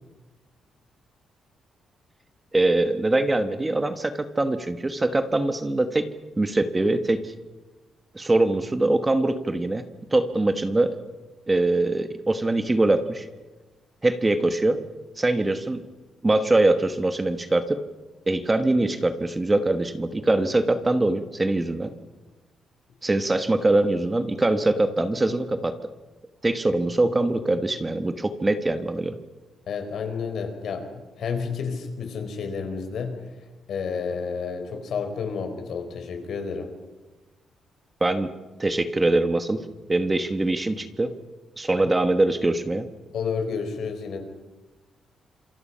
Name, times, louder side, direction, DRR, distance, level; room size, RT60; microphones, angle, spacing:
voice 1, 2.5-6.1 6.4-7.3 8.1-9.8 10.1-11.0 11.5-13.3 14.0-14.8 15.2-15.8 16.2-17.8 18.3-21.9 23.0-25.7 26.4-29.2 38.0-38.3 38.6-39.6 39.9-41.1 41.6-42.9, right 2 dB, 15° right, 9 dB, 1.2 m, -23 dB
voice 2, 29.7-33.2 33.7-36.7 43.1-44.2, left 5 dB, 60° left, 6 dB, 4.3 m, -30 dB
28.0 x 27.0 x 5.6 m, 1.1 s
cardioid pair, 160°, 0 cm